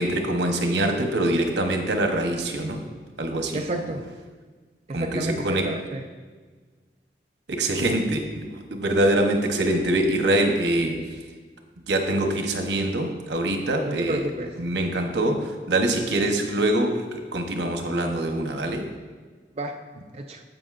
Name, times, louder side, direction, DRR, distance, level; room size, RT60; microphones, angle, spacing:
voice 1, 0.0-2.8 3.2-3.6 4.9-5.7 7.5-11.0 11.9-14.2 14.6-18.9, right 1 dB, 85° right, 4 dB, 1.0 m, -24 dB
voice 2, 3.5-4.1 4.9-6.1 13.8-14.6 19.6-19.8 20.1-20.4, right 1 dB, 35° right, 3 dB, 0.4 m, -30 dB
15.5 x 5.2 x 2.5 m, 1.4 s
head